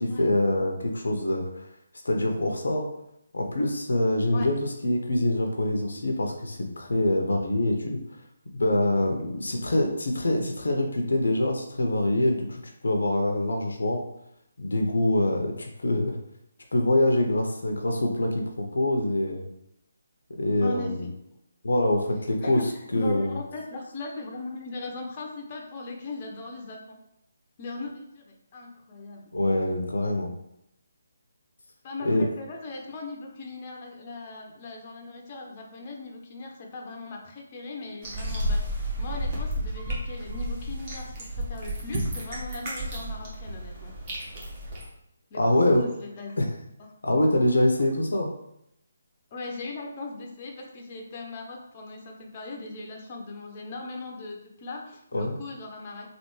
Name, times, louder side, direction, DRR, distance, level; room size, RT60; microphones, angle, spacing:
voice 1, 0.0-1.7 2.0-2.9 3.3-4.6 4.8-8.0 8.5-14.0 14.6-16.2 16.7-19.5 20.4-21.1 21.6-22.6 22.9-23.4 29.3-30.3 32.0-32.3 45.3-45.8 46.4-46.5 47.0-48.3 55.1-55.3, left 1 dB, 70° left, 2 dB, 0.6 m, -25 dB
voice 2, 20.6-21.1 22.4-22.6 22.9-27.0 27.6-29.2 31.8-43.9 45.3-45.4 45.7-46.4 47.8-47.9 49.3-56.1, left 3 dB, 35° left, 1 dB, 0.6 m, -39 dB
sound 1, 38.0-44.8, equal, 30° right, 1.1 m, -32 dB
3.3 x 2.5 x 3.1 m, 0.78 s
figure-of-eight pair, 145°, 0 cm